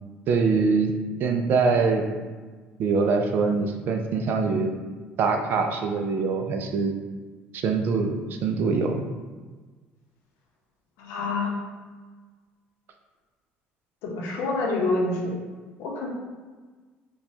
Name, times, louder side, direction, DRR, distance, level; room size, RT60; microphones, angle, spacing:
voice 1, 0.3-0.9 1.2-2.0 2.8-4.7 5.2-7.0 7.5-8.1 8.4-9.0, right 4 dB, 55° right, 5 dB, 0.4 m, -23 dB
voice 2, 11.0-11.5 14.0-15.3 15.8-16.1, left 3 dB, 85° left, -2 dB, 0.8 m, -27 dB
4.5 x 2.2 x 2.7 m, 1.4 s
cardioid pair, 135°, 4 cm